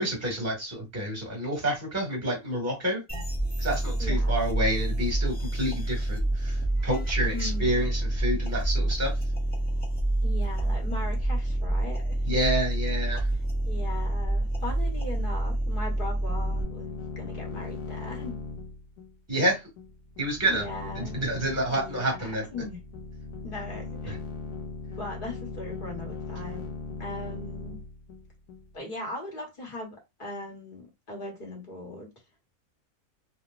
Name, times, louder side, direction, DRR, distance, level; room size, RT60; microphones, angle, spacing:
voice 1, 0.0-3.0 3.6-9.2 12.2-13.3 19.3-19.7 20.2-20.6 20.9-22.4 24.0-24.2, right 1 dB, 10° right, 1.3 m, -29 dB
sound 1, 3.1-16.6, right 1 dB, 10° left, 0.4 m, -27 dB
voice 2, 4.0-4.4 7.3-7.9 10.2-12.2 13.6-18.4 20.5-21.2 21.7-22.1 22.5-22.8 23.4-24.1 25.0-26.7 27.0-27.8 28.7-32.1, left 2 dB, 35° left, 1.2 m, -39 dB
sound 2, 16.3-28.8, left 4 dB, 80° left, 1.1 m, -39 dB
3.1 x 2.8 x 2.4 m
omnidirectional pair, 1.7 m